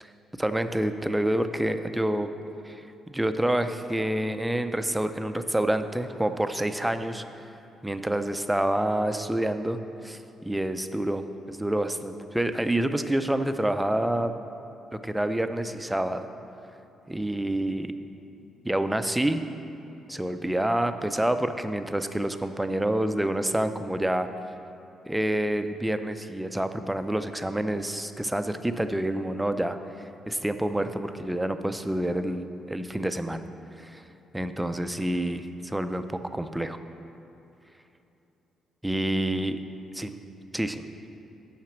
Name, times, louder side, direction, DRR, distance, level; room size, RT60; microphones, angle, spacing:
voice 1, 0.4-2.3 2.7-7.2 7.8-14.3 15.0-16.3 17.1-17.9 18.6-19.4 20.1-24.3 25.1-29.8 30.3-33.4 33.8-34.0 34.3-36.0 36.3-36.8 38.8-39.6 39.9-40.1 40.5-40.8, right 1 dB, 5° right, 9 dB, 0.5 m, -28 dB
7.4 x 5.8 x 7.2 m, 2.9 s
cardioid pair, 90°, 0 cm